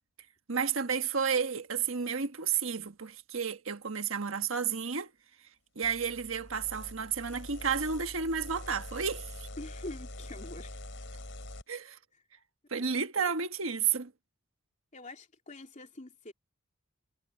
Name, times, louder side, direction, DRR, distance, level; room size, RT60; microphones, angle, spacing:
voice 1, 0.5-5.1 5.7-9.5 11.7-12.0 12.7-14.1, right 6 dB, 70° right, 1.4 m, -31 dB
sound 1, 5.8-11.6, left 1 dB, 60° left, 7.1 m, -44 dB
voice 2, 9.6-11.2 12.7-12.9 13.2-13.3 14.9-16.3, left 2 dB, 35° left, 3.2 m, -45 dB
head